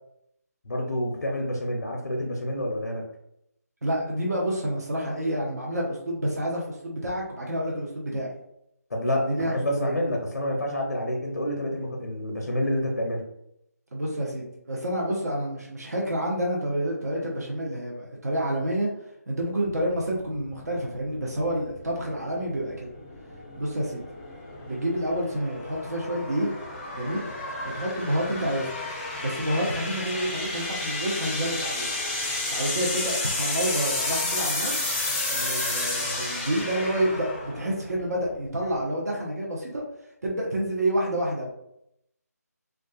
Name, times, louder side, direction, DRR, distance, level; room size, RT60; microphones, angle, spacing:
voice 1, 0.7-3.0 8.9-13.2, left 1 dB, 80° left, 0 dB, 0.5 m, -28 dB
voice 2, 3.8-8.3 9.1-9.9 13.9-18.9 19.3-22.9 23.6-24.0 24.7-26.5 26.9-27.3 27.7-28.7 29.2-31.9 32.5-34.8 35.3-39.8 40.2-41.5, right 1 dB, 70° right, -2 dB, 0.7 m, -28 dB
sound 1, 19.7-38.8, left 2 dB, 20° left, 0.5 m, -32 dB
2.4 x 2.3 x 2.3 m, 0.78 s
figure-of-eight pair, 155°, 9 cm